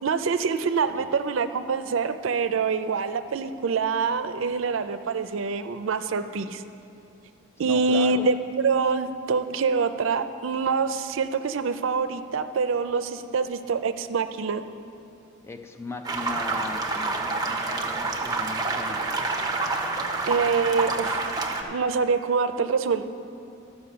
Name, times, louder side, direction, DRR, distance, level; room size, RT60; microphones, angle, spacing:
voice 1, 0.0-6.6 7.6-14.6 20.3-21.3 21.6-23.2, right 5 dB, 80° right, 10 dB, 0.4 m, -25 dB
voice 2, 7.6-8.3 15.4-19.1, left 2 dB, 15° left, 6 dB, 0.5 m, -38 dB
sound 1, 16.0-21.6, right 3 dB, 20° right, 0.7 m, -28 dB
13.0 x 5.6 x 6.7 m, 2.6 s
head